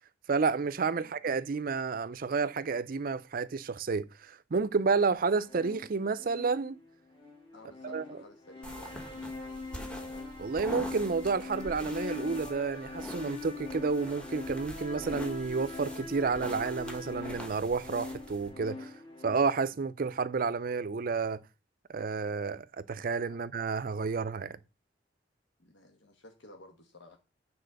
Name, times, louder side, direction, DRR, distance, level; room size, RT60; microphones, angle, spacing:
voice 1, 0.3-6.8 7.8-8.0 10.4-18.9 19.2-21.4 21.9-24.6, right 4 dB, 50° right, 0.5 m, -30 dB
sound 1, 5.4-19.4, left 3 dB, 25° left, 2.6 m, -42 dB
voice 2, 7.5-9.0 23.3-23.4 25.6-27.2, left 2 dB, 75° left, 1.2 m, -54 dB
sound 2, 8.6-18.5, equal, 5° left, 1.3 m, -46 dB
9.1 x 4.2 x 6.5 m
head